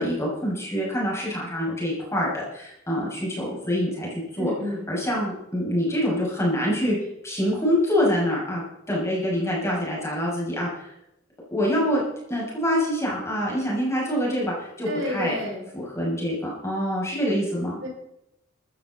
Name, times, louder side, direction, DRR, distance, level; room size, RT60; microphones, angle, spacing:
voice 1, 0.0-4.5 4.9-7.0 7.2-10.7 11.5-12.0 12.3-15.3 15.7-17.8, equal, 15° left, -4 dB, 6.8 m, -25 dB
voice 2, 4.4-4.8 14.8-15.6 17.8-17.9, left 1 dB, 70° right, -2 dB, 6.4 m, -30 dB
15.5 x 14.0 x 4.3 m, 0.82 s
head